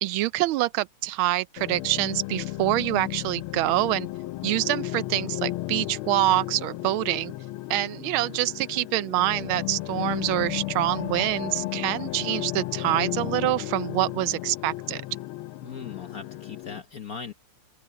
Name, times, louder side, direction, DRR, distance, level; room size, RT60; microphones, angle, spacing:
voice 1, 0.0-4.1 4.4-7.3 7.7-15.0, right 16 dB, 80° right, 1.4 m, -26 dB
sound 1, 1.6-16.8, left 17 dB, 80° left, 1.4 m, -34 dB
voice 2, 15.6-17.3, left 6 dB, 50° left, 1.3 m, -38 dB
open air
omnidirectional pair, 2.4 m